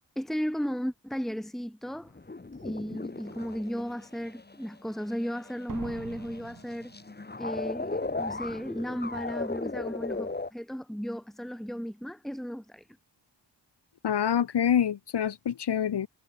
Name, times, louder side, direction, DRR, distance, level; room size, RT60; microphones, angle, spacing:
voice 1, 0.1-2.1 2.6-6.9 7.4-12.8, equal, ahead, 1.8 m, -35 dB
sound 1, 2.1-10.5, left 3 dB, 25° left, 2.8 m, -37 dB
Slam, 2.5-2.6 3.2-3.6 5.7-7.6 7.8-7.9, right 5 dB, 50° right, 4.0 m, -45 dB
voice 2, 14.0-16.1, left 9 dB, 70° left, 1.7 m, -26 dB
wide cardioid pair, 105°, 42 cm